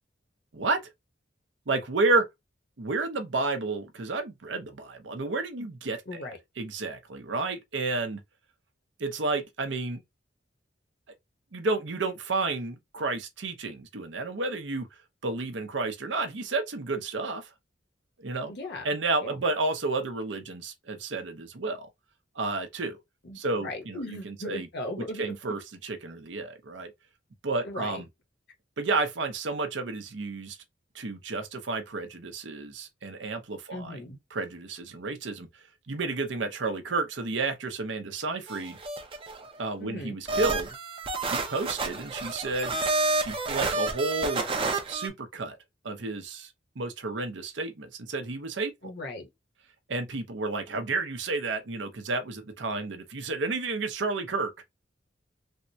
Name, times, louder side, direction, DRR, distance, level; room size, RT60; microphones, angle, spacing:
voice 1, 1.7-2.2 2.8-6.2 6.6-8.2 9.0-10.0 11.5-14.9 15.2-17.5 18.2-18.5 18.8-21.9 22.3-23.0 23.3-24.7 25.0-26.9 27.4-28.1 28.8-30.6 30.9-34.0 34.3-38.8 39.6-40.8 41.2-42.8 43.2-44.4 44.9-45.6 45.8-48.7 49.9-54.5, right 3 dB, 80° right, 0.7 m, -31 dB
voice 2, 6.1-6.4 18.5-18.8 19.2-19.4 23.2-25.4 27.6-28.0 33.7-34.2 39.8-40.2 48.8-49.3, left 1 dB, 60° left, 1.0 m, -37 dB
sound 1, 38.5-39.5 40.3-45.1, right 3 dB, 30° right, 0.6 m, -29 dB
3.5 x 2.2 x 2.7 m
head